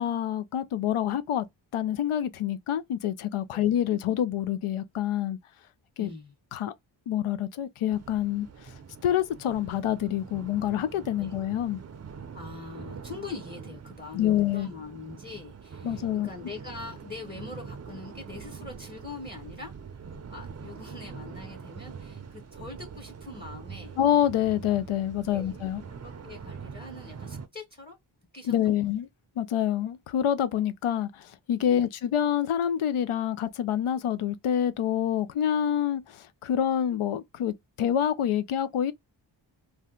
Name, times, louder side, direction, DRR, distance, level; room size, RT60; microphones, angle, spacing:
voice 1, 0.0-1.5 1.7-5.4 6.0-6.1 6.5-6.7 7.1-8.5 9.0-11.8 14.1-14.7 15.8-16.3 24.0-25.8 28.5-29.1 29.4-38.9, left 10 dB, 90° left, 0.6 m, -27 dB
voice 2, 6.0-6.3 11.2-11.3 12.3-24.0 25.3-25.7 26.0-28.0 28.3-28.8 31.6-31.8, left 3 dB, 20° left, 0.7 m, -43 dB
sound 1, 7.9-27.5, right 6 dB, 35° right, 0.5 m, -44 dB
2.7 x 2.2 x 3.6 m
wide cardioid pair, 90°, 48 cm